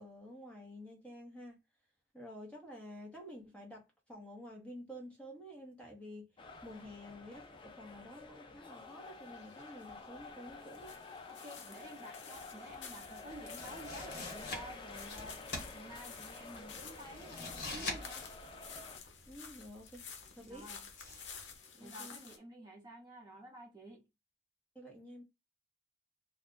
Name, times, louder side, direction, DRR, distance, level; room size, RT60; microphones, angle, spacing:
voice 1, 0.0-1.6 2.1-6.3 6.6-11.0 19.3-20.1 20.3-20.7 21.7-22.2 24.7-25.2, equal, 5° left, 0.9 m, -50 dB
sound 1, 6.4-19.0, left 3 dB, 25° left, 0.4 m, -50 dB
sound 2, 8.7-22.4, left 6 dB, 90° left, 0.6 m, -52 dB
voice 2, 11.3-15.4 15.7-18.3 20.4-20.9 21.8-24.1, right 1 dB, 20° right, 0.7 m, -51 dB
sound 3, 12.7-21.6, left 2 dB, 65° left, 1.2 m, -46 dB
2.4 x 2.3 x 3.7 m
head